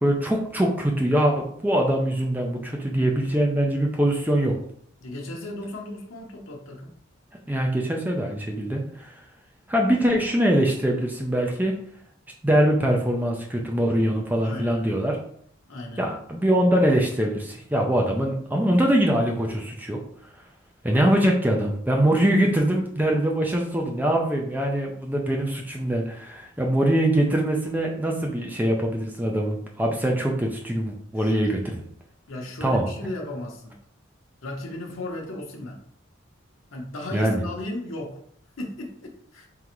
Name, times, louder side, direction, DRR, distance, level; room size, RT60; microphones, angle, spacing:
voice 1, 0.0-4.5 7.5-9.2 9.7-11.7 12.4-15.2 16.0-20.0 20.8-31.8 32.6-32.8 37.1-37.4, right 1 dB, 10° right, 1 dB, 0.4 m, -23 dB
voice 2, 5.0-6.9 14.4-15.0 15.7-16.1 31.2-31.4 32.3-33.8 34.4-35.8 36.7-38.2 38.6-39.5, left 1 dB, 85° left, 0 dB, 0.8 m, -35 dB
3.8 x 3.3 x 3.0 m, 0.63 s
head